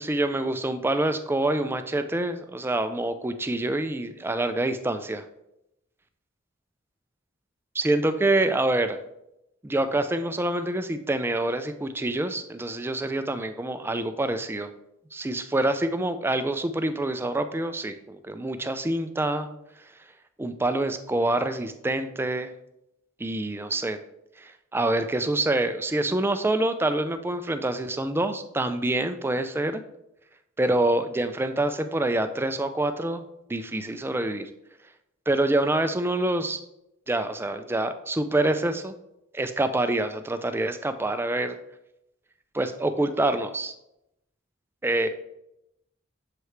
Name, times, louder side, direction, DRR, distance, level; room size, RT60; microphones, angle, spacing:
voice 1, 0.0-5.2 7.7-9.0 9.6-14.7 15.1-19.5 20.4-22.5 23.2-24.0 24.4-29.8 30.6-33.2 33.5-34.5 35.3-36.6 37.1-39.0 39.3-41.6 42.5-43.7 44.8-45.1, right 2 dB, 10° right, 9 dB, 0.3 m, -26 dB
6.6 x 4.7 x 3.2 m, 0.85 s
head